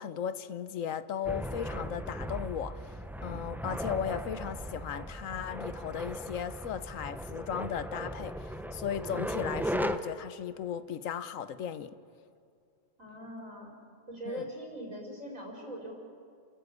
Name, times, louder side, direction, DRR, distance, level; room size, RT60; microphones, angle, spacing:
voice 1, 0.0-2.8 3.2-12.0 14.3-14.5, left 8 dB, 85° left, 1.2 m, -36 dB
sound 1, 1.2-10.0, equal, ahead, 0.5 m, -37 dB
voice 2, 13.0-13.8 14.1-15.9, equal, 85° right, 5.1 m, -41 dB
29.0 x 13.5 x 8.4 m
omnidirectional pair, 1.3 m